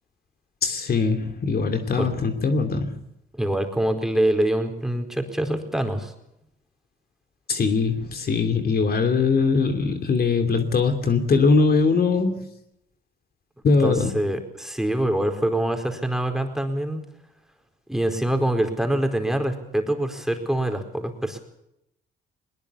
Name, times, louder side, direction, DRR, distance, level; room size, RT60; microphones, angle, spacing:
voice 1, 0.6-3.0 7.5-12.4 13.6-14.1, left 4 dB, 50° left, 7 dB, 2.9 m, -21 dB
voice 2, 3.4-6.1 13.8-17.0 17.9-21.4, right 1 dB, ahead, 5 dB, 4.5 m, -25 dB
21.0 x 21.0 x 7.1 m, 0.83 s
cardioid pair, 90°, 20 cm